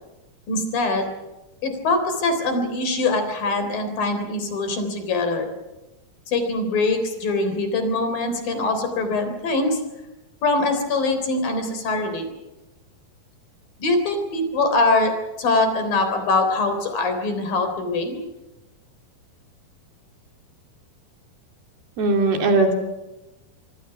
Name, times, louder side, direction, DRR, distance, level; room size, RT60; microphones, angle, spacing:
voice 1, 0.5-1.1 1.6-5.5 6.3-9.8 10.4-12.3 13.8-18.2, left 2 dB, 65° left, 7 dB, 5.3 m, -23 dB
voice 2, 22.0-22.7, right 3 dB, 70° right, 3 dB, 4.7 m, -19 dB
26.0 x 24.0 x 5.9 m, 1.0 s
omnidirectional pair, 4.5 m